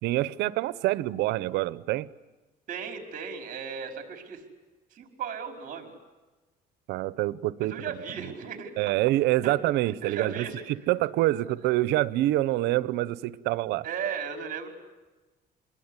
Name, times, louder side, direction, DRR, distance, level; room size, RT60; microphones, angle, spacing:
voice 1, 0.0-2.1 6.9-7.7 8.2-8.3 8.8-10.5 10.9-13.8, right 16 dB, 90° right, 18 dB, 0.9 m, -26 dB
voice 2, 2.7-4.4 4.9-5.9 7.6-9.0 9.4-9.5 9.8-10.6 13.8-14.7, right 7 dB, 55° right, 4 dB, 5.0 m, -36 dB
27.0 x 21.5 x 9.8 m, 1.2 s
cardioid pair, 110°, 17 cm